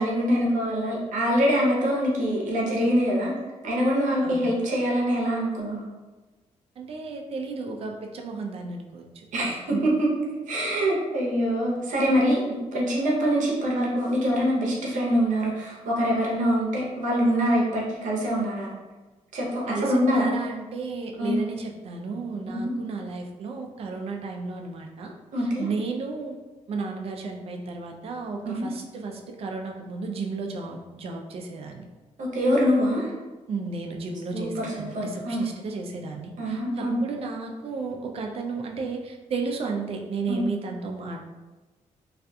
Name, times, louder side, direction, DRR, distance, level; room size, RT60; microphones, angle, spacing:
voice 1, 0.0-3.3 3.6-5.8 9.3-10.1 10.5-12.4 12.7-18.7 19.3-20.4 21.2-21.3 22.5-22.7 25.3-25.7 28.4-28.7 32.2-33.1 34.3-35.4 36.4-37.0 40.3-40.5, equal, 75° right, -3 dB, 0.7 m, -24 dB
voice 2, 4.2-4.6 6.8-9.8 19.7-26.4 26.7-31.9 33.5-41.2, right 4 dB, 50° right, 2 dB, 0.3 m, -33 dB
2.4 x 2.2 x 2.6 m, 1.2 s
cardioid pair, 115°, 13 cm